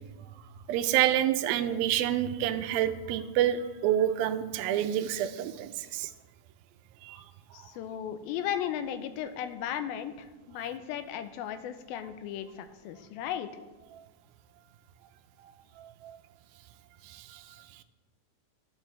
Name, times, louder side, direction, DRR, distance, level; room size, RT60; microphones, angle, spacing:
voice 1, 0.7-6.1 7.1-7.2, right 11 dB, 80° right, 10 dB, 2.3 m, -27 dB
voice 2, 7.5-13.5, left 10 dB, 85° left, 10 dB, 2.5 m, -36 dB
12.0 x 11.5 x 3.3 m, 1.2 s
omnidirectional pair, 4.2 m